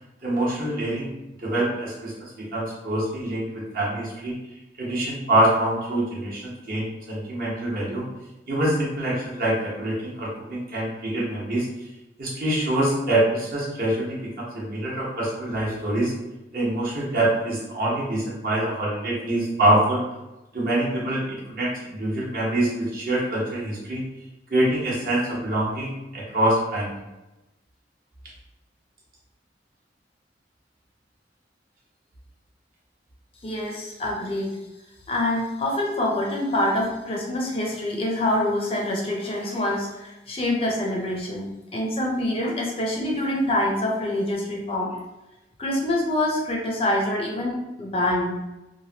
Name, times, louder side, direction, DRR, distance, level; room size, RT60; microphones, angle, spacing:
voice 1, 0.2-1.1 1.4-4.3 4.8-8.1 8.5-11.7 12.2-16.1 16.5-20.1 20.5-24.0 24.5-26.9, right 1 dB, 50° right, -6 dB, 0.9 m, -25 dB
voice 2, 33.4-34.5 35.1-44.9 45.6-48.4, left 1 dB, 30° left, -1 dB, 0.5 m, -25 dB
3.1 x 2.2 x 2.7 m, 1.0 s
head